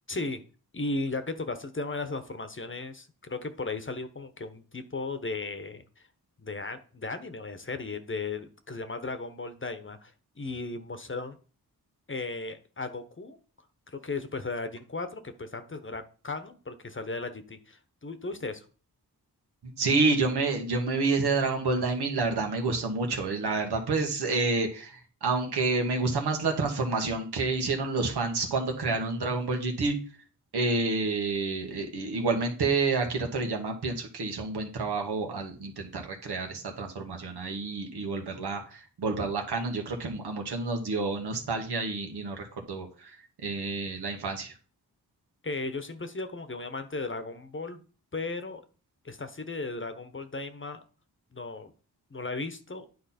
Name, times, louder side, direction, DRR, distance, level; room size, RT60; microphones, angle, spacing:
voice 1, 0.1-0.4 0.7-5.8 6.4-11.4 12.1-13.4 13.9-18.6 45.4-47.8 48.1-48.6 49.0-50.8 51.3-51.7 52.1-52.8, left 3 dB, 30° left, 10 dB, 1.1 m, -36 dB
voice 2, 19.6-30.0 30.5-44.5, right 3 dB, 85° right, 3 dB, 1.6 m, -29 dB
9.4 x 4.2 x 4.3 m, 0.38 s
cardioid pair, 50°, 39 cm